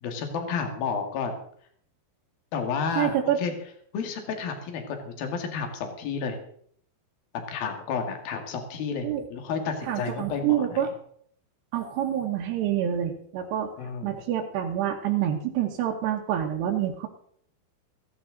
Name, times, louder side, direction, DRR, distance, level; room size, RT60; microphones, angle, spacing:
voice 1, 0.0-1.4 2.5-3.5 3.9-6.4 7.5-10.8 13.8-14.2, left 5 dB, 65° left, 5 dB, 3.7 m, -31 dB
voice 2, 3.0-3.4 9.0-9.3 9.8-10.9 11.7-13.7 14.0-17.1, right 10 dB, 85° right, -1 dB, 3.3 m, -27 dB
16.0 x 15.0 x 3.9 m, 0.62 s
omnidirectional pair, 4.7 m